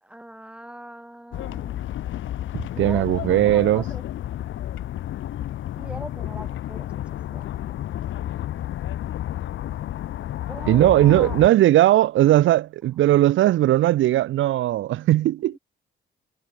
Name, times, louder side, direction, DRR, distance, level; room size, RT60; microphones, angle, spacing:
voice 1, 0.0-4.0 5.8-7.0 7.3-7.4 10.5-11.4 15.4-15.6, right 1 dB, 5° right, 4.3 m, -41 dB
sound 1, 1.3-11.5, left 12 dB, 75° left, 3.1 m, -31 dB
voice 2, 2.5-3.8 10.7-15.6, right 14 dB, 80° right, 1.1 m, -18 dB
cardioid pair, 90°, 20 cm